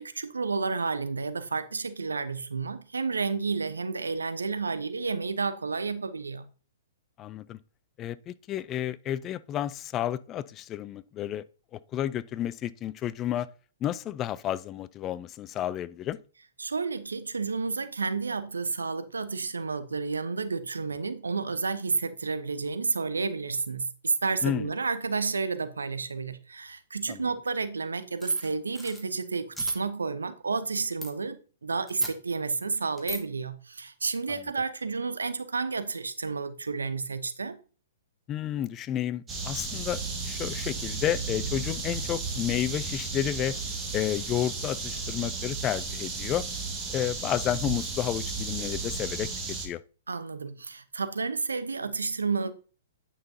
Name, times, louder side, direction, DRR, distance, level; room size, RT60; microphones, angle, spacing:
voice 1, 0.0-6.5 16.6-37.6 50.1-52.5, right 4 dB, 80° right, 0.8 m, -31 dB
voice 2, 7.2-7.6 8.0-11.4 11.7-13.5 13.8-16.2 24.4-24.7 27.1-27.2 34.3-34.4 38.3-43.6 43.9-46.4 46.9-49.3 49.6-49.8, left 11 dB, 25° left, 0.3 m, -31 dB
sound 1, 28.2-29.0 29.5-29.7 31.0-31.1 31.9-32.1 33.0-33.2, left 2 dB, ahead, 1.5 m, -40 dB
sound 2, 39.3-49.7, right 4 dB, 20° right, 1.6 m, -34 dB
9.3 x 5.7 x 2.7 m
figure-of-eight pair, 115°, 0 cm